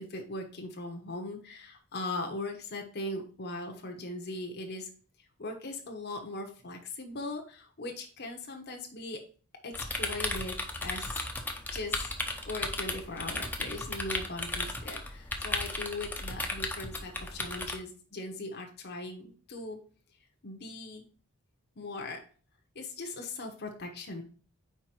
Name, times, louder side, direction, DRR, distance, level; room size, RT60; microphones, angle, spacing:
voice 1, 0.0-4.9 5.4-9.2 9.6-11.3 11.7-12.1 12.4-19.8 20.4-21.0 21.8-22.2 22.7-24.2, left 2 dB, 50° left, 2 dB, 1.0 m, -39 dB
sound 1, 9.7-17.8, left 2 dB, 10° left, 0.8 m, -35 dB
4.7 x 4.6 x 4.4 m, 0.40 s
head